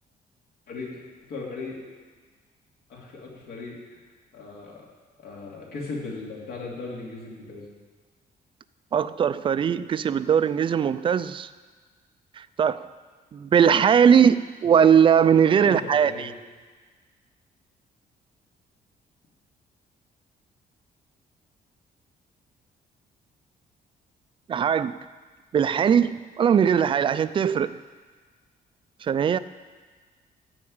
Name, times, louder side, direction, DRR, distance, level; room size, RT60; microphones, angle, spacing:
voice 1, 0.7-1.0 1.3-1.8 2.9-4.0 4.3-4.8 5.2-7.7 15.5-16.3, left 3 dB, 75° left, -3 dB, 2.8 m, -37 dB
voice 2, 8.9-11.5 12.6-12.9 13.3-16.3 24.5-25.0 25.5-27.7 29.0-29.4, right 7 dB, 30° right, 14 dB, 0.3 m, -20 dB
14.0 x 4.7 x 8.6 m, 1.4 s
cardioid pair, 155°, 16 cm